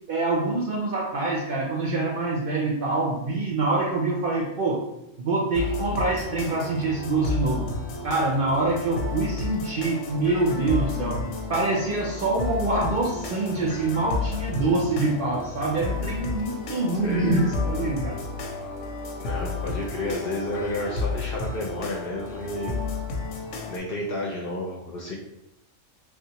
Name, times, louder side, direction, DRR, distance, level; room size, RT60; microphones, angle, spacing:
voice 1, 0.1-4.8 5.2-7.7 8.0-11.2 11.5-18.2, right 2 dB, 65° right, -2 dB, 0.6 m, -25 dB
sound 1, 5.5-23.8, left 3 dB, 85° left, 1.0 m, -32 dB
voice 2, 19.2-22.8 23.7-25.2, left 1 dB, 60° left, -2 dB, 0.6 m, -31 dB
3.4 x 2.4 x 2.8 m, 0.85 s
omnidirectional pair, 1.3 m